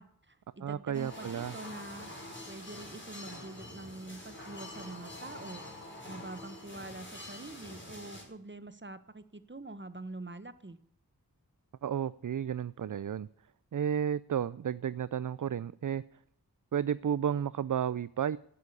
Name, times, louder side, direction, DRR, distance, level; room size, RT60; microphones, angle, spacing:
voice 1, 0.0-2.1 2.5-5.6 6.1-10.8, right 2 dB, 30° right, 1.2 m, -45 dB
voice 2, 0.6-1.5 11.8-13.3 13.7-16.0 16.7-18.4, right 8 dB, 55° right, 0.5 m, -32 dB
sound 1, 0.9-8.2, left 1 dB, 30° left, 5.2 m, -46 dB
12.0 x 8.5 x 9.8 m
wide cardioid pair, 50°, 38 cm